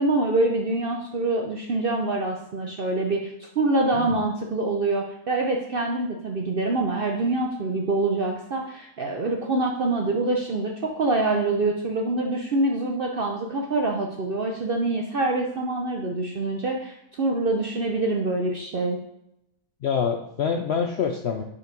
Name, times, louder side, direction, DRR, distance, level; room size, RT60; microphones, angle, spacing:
voice 1, 0.0-19.0, right 2 dB, 60° right, 1 dB, 0.6 m, -25 dB
voice 2, 3.9-4.3 19.8-21.4, left 6 dB, 70° left, 3 dB, 0.6 m, -26 dB
5.3 x 4.1 x 5.2 m, 0.80 s
omnidirectional pair, 1.6 m